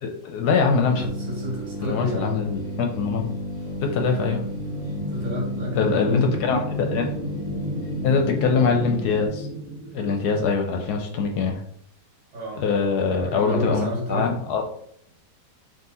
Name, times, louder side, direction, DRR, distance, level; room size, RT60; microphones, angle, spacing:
voice 1, 0.0-1.1 1.8-3.3 3.8-4.4 5.7-7.2 8.0-9.5 9.9-11.6 12.6-14.6, left 5 dB, 75° left, 3 dB, 1.1 m, -23 dB
sound 1, 0.8-9.3, left 1 dB, 20° left, 1.2 m, -32 dB
voice 2, 1.0-2.4 5.1-6.3 12.3-14.3, right 1 dB, 55° right, -3 dB, 1.9 m, -30 dB
sound 2, 4.1-11.1, right 2 dB, 30° right, 0.6 m, -35 dB
3.6 x 2.7 x 4.1 m, 0.69 s
omnidirectional pair, 1.8 m